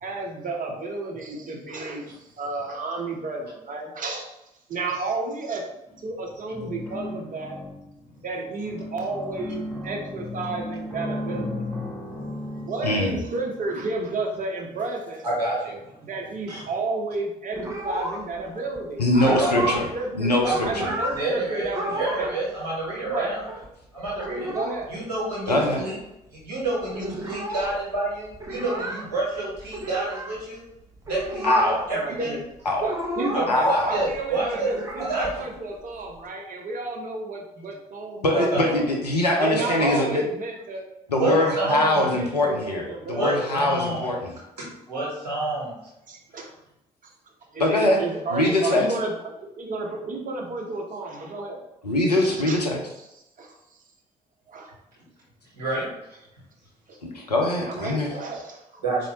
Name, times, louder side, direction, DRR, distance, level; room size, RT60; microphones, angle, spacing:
voice 1, 0.0-4.3 4.7-5.6 6.0-7.6 8.2-11.7 12.5-15.3 16.0-20.3 20.6-22.4 23.0-23.3 24.5-24.9 25.5-25.7 31.9-32.4 32.8-38.8 39.4-40.8 41.2-44.1 46.1-46.5 47.5-51.6 52.2-52.6 53.4-53.5 54.5-54.7 57.5-58.8, right 3 dB, 40° right, 0 dB, 0.9 m, -32 dB
sound 1, 5.9-6.2 6.5-8.2 8.7-13.8 14.8-14.9 15.3-15.4, left 1 dB, 5° left, 1.0 m, -35 dB
voice 2, 12.8-13.2 19.0-19.9 20.1-20.9 25.5-25.8 31.4-31.8 32.7-32.8 33.5-34.0 38.2-40.2 41.1-44.3 47.6-48.0 48.3-48.8 51.8-52.8 57.0-58.1, left 1 dB, 90° left, 1 dB, 0.5 m, -23 dB
voice 3, 15.2-15.9 16.5-16.6 19.2-19.6 20.4-23.4 23.9-24.5 24.9-26.0 26.3-30.6 31.0-31.6 31.9-32.4 33.3-34.7 35.0-35.4 38.3-38.7 39.5-39.9 41.1-42.1 43.1-44.1 44.9-45.7 55.5-55.9 58.8-59.1, right 2 dB, 85° right, -5 dB, 1.1 m, -28 dB
sound 2, 17.5-18.5 18.8-18.9 19.1-20.0 20.2-21.2 21.6-22.3 22.6-22.7 22.8-23.7 24.1-24.9 25.2-25.3 25.4-26.0 26.4-26.5 26.6-30.4 31.0-32.0 32.2-33.6 34.0-36.2, equal, 15° right, 0.7 m, -32 dB
4.2 x 2.5 x 2.8 m, 0.87 s
figure-of-eight pair, 45°, 20 cm